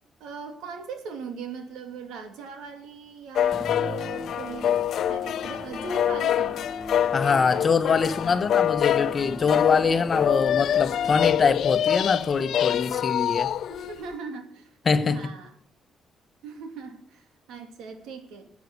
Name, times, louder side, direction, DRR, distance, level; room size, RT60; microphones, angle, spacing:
voice 1, 0.2-4.8 5.1-6.7 8.0-8.5 13.7-14.7 15.0-15.5 16.4-18.5, right 4 dB, 90° right, 2.7 m, -39 dB
sound 1, 3.3-14.0, left 10 dB, 70° left, 0.5 m, -26 dB
Musical instrument, 3.5-12.0, left 2 dB, 10° left, 3.0 m, -39 dB
voice 2, 7.1-13.5 14.8-15.3, left 5 dB, 40° left, 1.2 m, -24 dB
13.5 x 8.5 x 8.1 m
cardioid pair, 90°, 0 cm